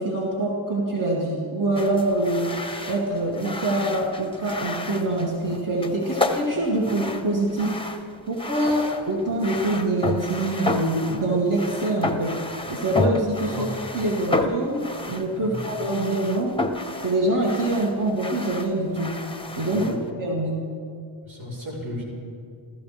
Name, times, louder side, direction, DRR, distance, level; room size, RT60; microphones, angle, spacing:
voice 1, 0.0-2.6 2.9-7.8 8.3-12.4 12.7-13.7 13.9-16.6 17.0-19.1 19.6-19.9 20.2-20.6, right 1 dB, 40° right, -4 dB, 2.7 m, -25 dB
sound 1, 1.8-20.1, left 2 dB, 10° left, 0.9 m, -32 dB
voice 2, 13.5-14.0 15.4-15.6 19.7-20.0 21.2-22.0, left 1 dB, 80° right, -5 dB, 4.3 m, -34 dB
29.0 x 14.0 x 3.5 m, 2.4 s
wide cardioid pair, 105°, 47 cm